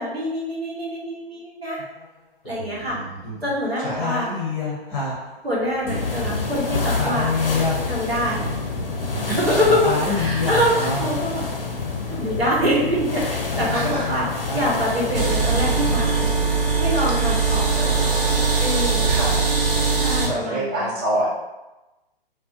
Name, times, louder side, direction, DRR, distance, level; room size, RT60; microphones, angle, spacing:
voice 1, 0.0-1.8 2.4-3.0 3.4-4.3 5.4-7.3 7.8-8.4 9.3-11.4 11.7-14.3 14.5-16.3 16.8-17.8 18.6-19.2 20.0-21.0, equal, 90° right, -5 dB, 1.0 m, -25 dB
sound 1, 1.8-1.9 2.4-3.5 3.8-6.6 6.8-11.2 11.7-13.1 13.4-14.7, left 3 dB, 25° left, 0.6 m, -29 dB
sound 2, 5.9-16.2, left 4 dB, 70° left, 0.6 m, -28 dB
voice 2, 13.7-14.2 17.7-18.5 19.1-19.3 20.2-21.3, right 1 dB, 10° right, -9 dB, 0.4 m, -28 dB
sound 3, 15.1-20.3, right 4 dB, 65° right, 0.7 m, -21 dB
2.4 x 2.1 x 2.5 m, 1.0 s
figure-of-eight pair, 125°, 30 cm